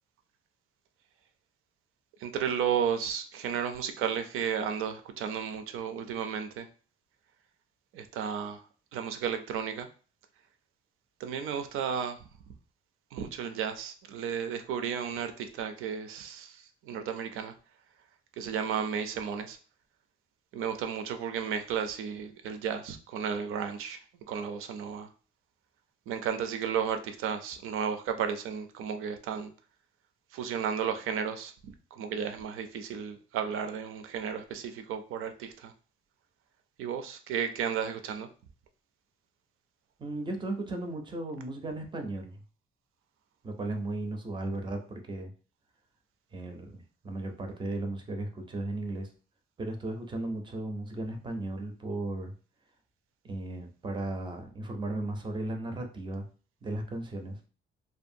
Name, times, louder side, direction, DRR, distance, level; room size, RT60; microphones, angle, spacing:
voice 1, 2.2-6.7 7.9-9.9 11.2-12.5 13.1-17.5 18.3-19.6 20.5-25.1 26.1-29.5 30.3-35.7 36.8-38.3, right 7 dB, 80° right, 7 dB, 0.4 m, -33 dB
voice 2, 40.0-42.3 43.4-45.3 46.3-49.1 49.6-52.3 53.2-56.2 56.6-57.4, right 2 dB, 25° right, 4 dB, 0.4 m, -35 dB
2.6 x 2.2 x 2.6 m, 0.38 s
cardioid pair, 165°, 21 cm